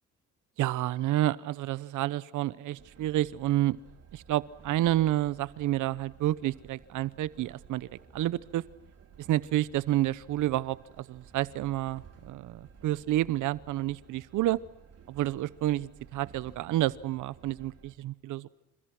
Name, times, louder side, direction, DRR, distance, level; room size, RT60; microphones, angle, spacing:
voice 1, 0.6-3.8 4.1-8.6 9.2-14.6 15.1-18.5, right 14 dB, 85° right, 18 dB, 0.9 m, -29 dB
Train, 2.8-17.9, right 6 dB, 55° right, 4.3 m, -55 dB
29.0 x 28.5 x 6.0 m, 0.80 s
cardioid pair, 90°, 30 cm